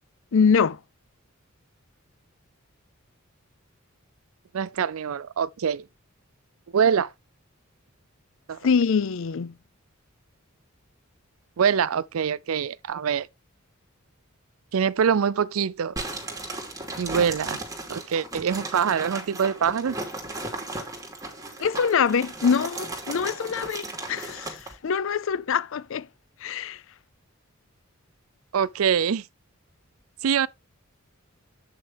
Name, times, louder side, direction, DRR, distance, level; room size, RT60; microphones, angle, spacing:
voice 1, 0.3-0.8 8.6-9.6 21.6-26.1 26.4-26.8, left 6 dB, 65° left, 0.5 m, -24 dB
voice 2, 4.5-5.9 6.7-7.1 8.5-8.6 11.6-13.3 14.7-15.9 17.0-17.6 17.9-20.0 28.5-29.2 30.2-30.5, right 7 dB, 80° right, 0.4 m, -24 dB
sound 1, 16.0-24.7, right 2 dB, 15° right, 2.6 m, -36 dB
8.3 x 6.4 x 3.4 m
head